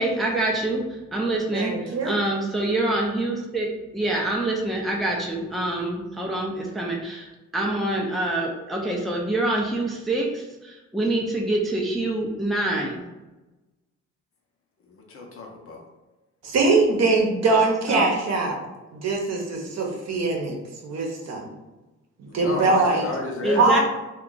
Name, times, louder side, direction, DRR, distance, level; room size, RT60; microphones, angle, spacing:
voice 1, 0.0-13.0 17.9-18.1 23.4-23.8, right 2 dB, ahead, -1 dB, 0.5 m, -26 dB
voice 2, 1.5-2.2 16.4-18.6 18.9-20.6 20.8-21.5 22.2-23.0 23.6-23.8, right 3 dB, 60° right, 1 dB, 0.8 m, -22 dB
voice 3, 14.9-15.8 22.2-23.8, left 3 dB, 45° left, 0 dB, 0.7 m, -32 dB
2.4 x 2.3 x 3.8 m, 1.1 s
cardioid pair, 90°, 30 cm